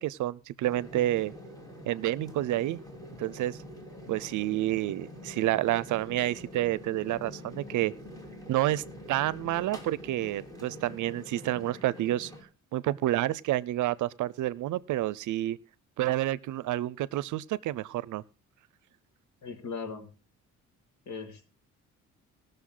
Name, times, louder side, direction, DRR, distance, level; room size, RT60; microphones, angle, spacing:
voice 1, 0.0-1.3 1.9-2.8 3.2-3.6 4.1-7.9 8.5-12.3 12.7-15.6 16.0-18.2, right 15 dB, 75° right, 23 dB, 0.6 m, -29 dB
sound 1, 0.6-12.4, left 1 dB, 10° left, 3.2 m, -45 dB
voice 2, 19.4-20.1 21.1-21.5, left 5 dB, 70° left, 6 dB, 2.4 m, -38 dB
19.5 x 6.7 x 3.8 m, 0.31 s
cardioid pair, 90°, 30 cm